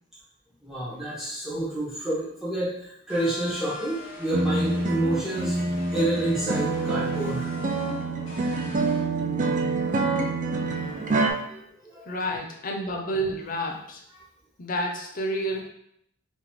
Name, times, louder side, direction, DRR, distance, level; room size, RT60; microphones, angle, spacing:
voice 1, 0.6-5.5 5.9-7.5 10.1-10.2 10.7-12.0, right 1 dB, ahead, -10 dB, 1.4 m, -29 dB
sound 1, 3.1-9.0, left 1 dB, 70° left, 1.2 m, -42 dB
sound 2, 4.3-11.3, right 3 dB, 40° right, 0.5 m, -26 dB
voice 2, 12.1-14.0 14.6-15.6, right 1 dB, 45° left, 2 dB, 0.6 m, -29 dB
3.7 x 3.0 x 3.7 m, 0.73 s
head